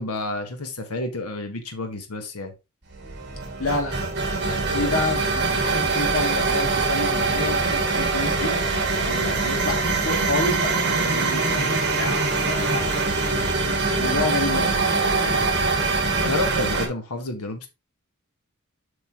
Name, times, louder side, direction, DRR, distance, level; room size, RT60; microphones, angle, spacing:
voice 1, 0.0-2.5 9.2-9.4 16.2-17.7, left 2 dB, 85° left, 1.4 m, -30 dB
sound 1, 2.9-16.9, right 3 dB, 50° right, 2.2 m, -23 dB
voice 2, 3.6-8.5 9.0-9.8 10.0-12.2 12.5-13.5 14.0-15.5, left 2 dB, 65° left, 2.4 m, -29 dB
8.2 x 5.4 x 3.0 m
head